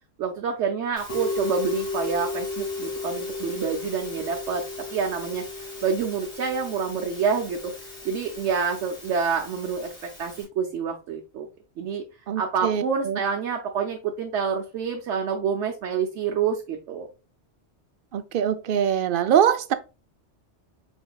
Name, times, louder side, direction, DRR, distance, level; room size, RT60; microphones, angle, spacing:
voice 1, 0.2-4.6 4.9-5.5 5.8-7.7 8.0-11.5 11.8-12.0 12.4-17.1, right 6 dB, 90° right, 1.1 m, -27 dB
Musical instrument, 1.0-10.4, left 3 dB, 85° left, 3.4 m, -35 dB
voice 2, 12.3-13.2 18.1-19.7, right 9 dB, 60° right, 0.7 m, -23 dB
5.4 x 4.3 x 2.3 m
omnidirectional pair, 1.2 m